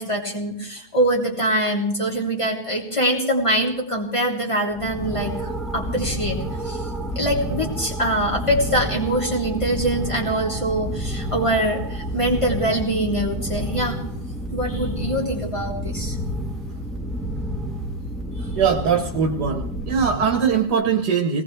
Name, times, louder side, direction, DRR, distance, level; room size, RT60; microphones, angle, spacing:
voice 1, 0.0-5.3 5.7-6.4 6.6-6.8 7.1-14.0 14.5-16.2, right 1 dB, 15° left, -2 dB, 3.2 m, -23 dB
sound 1, 4.7-20.7, equal, ahead, 1.4 m, -30 dB
voice 2, 18.6-21.4, right 6 dB, 70° right, 3 dB, 1.7 m, -21 dB
20.5 x 18.5 x 3.4 m, 0.68 s
omnidirectional pair, 1.8 m